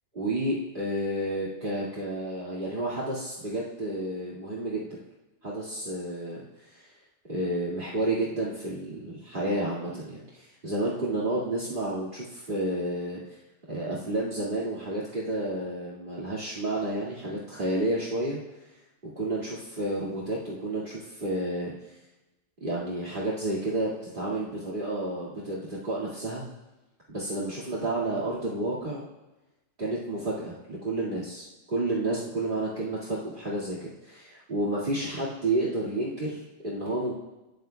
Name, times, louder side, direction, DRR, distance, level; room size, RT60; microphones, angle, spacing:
voice 1, 0.1-5.0 5.4-6.9 7.3-13.2 13.7-18.4 19.0-21.7 22.6-26.4 27.1-29.1 29.8-37.1, right 1 dB, 45° right, -6 dB, 2.4 m, -31 dB
29.5 x 13.0 x 2.3 m, 1.0 s
omnidirectional pair, 1.3 m